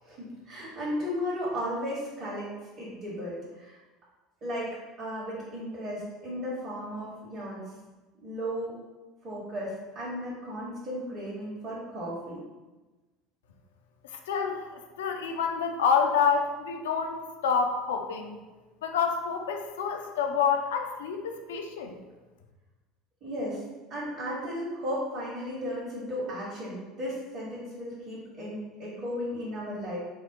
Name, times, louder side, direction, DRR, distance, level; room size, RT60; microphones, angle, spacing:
voice 1, 0.0-2.5 2.8-3.8 4.4-7.7 8.2-8.7 9.2-12.4 23.2-23.6 23.9-30.0, equal, 45° right, -7 dB, 1.3 m, -35 dB
voice 2, 14.0-14.7 15.0-18.4 18.8-22.0, left 6 dB, 70° left, 4 dB, 0.4 m, -28 dB
4.2 x 2.1 x 3.9 m, 1.2 s
figure-of-eight pair, 70°, 0 cm